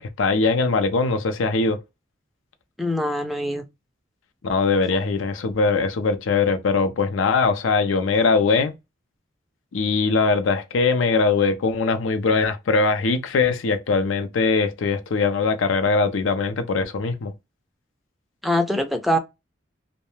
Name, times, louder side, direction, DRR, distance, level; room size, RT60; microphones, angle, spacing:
voice 1, 0.0-1.8 4.4-8.7 9.7-17.3, left 4 dB, 90° left, 0.5 m, -21 dB
voice 2, 2.8-3.7 18.4-19.2, equal, ahead, 0.4 m, -23 dB
2.3 x 2.1 x 3.0 m
head